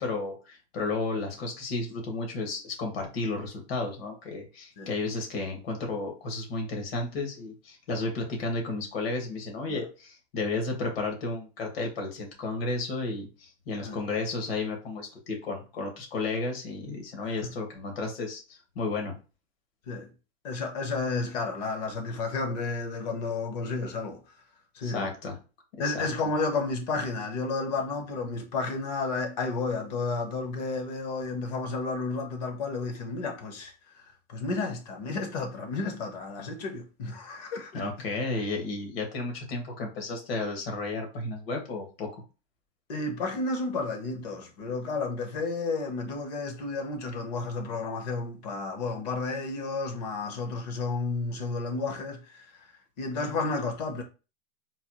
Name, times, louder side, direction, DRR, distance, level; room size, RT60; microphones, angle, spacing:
voice 1, 0.0-19.2 24.8-25.3 25.8-26.1 37.7-42.2, left 3 dB, 65° left, 1.6 m, -33 dB
voice 2, 20.4-24.2 24.7-25.1 25.8-37.9 42.9-52.7 53.0-54.0, left 3 dB, 40° left, 0.7 m, -32 dB
4.0 x 2.3 x 2.9 m
supercardioid pair, 175°, 33 cm